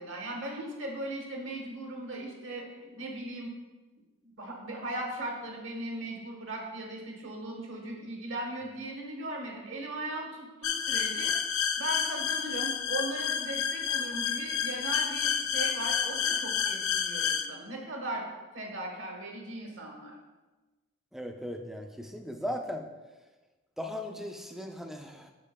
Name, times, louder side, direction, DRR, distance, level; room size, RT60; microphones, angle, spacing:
voice 1, 0.0-3.5 4.2-11.3 11.8-18.3 18.5-20.1, right 1 dB, 65° right, 1 dB, 1.2 m, -38 dB
sound 1, 10.6-17.5, left 8 dB, 85° left, 0.4 m, -30 dB
voice 2, 21.1-22.9 23.8-25.3, left 1 dB, ahead, 4 dB, 0.4 m, -37 dB
8.4 x 6.1 x 2.2 m, 1.2 s
head